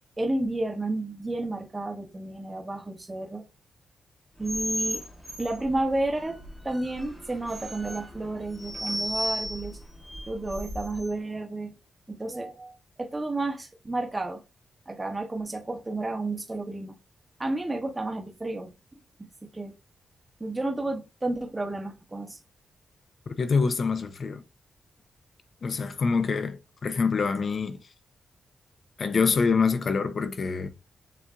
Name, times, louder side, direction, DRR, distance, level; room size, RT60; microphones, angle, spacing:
voice 1, 0.2-3.4 4.4-5.0 5.4-6.4 6.6-9.8 10.3-11.7 12.1-12.7 13.0-14.4 14.9-17.0 17.4-18.7 19.2-19.7 20.4-22.4, right 2 dB, 20° right, 0.9 m, -31 dB
sound 1, 4.4-11.1, equal, 5° left, 0.9 m, -35 dB
voice 2, 23.4-24.4 25.6-27.8 29.0-30.7, left 5 dB, 50° left, 0.5 m, -25 dB
7.4 x 2.6 x 2.3 m
wide cardioid pair, 110°, 0 cm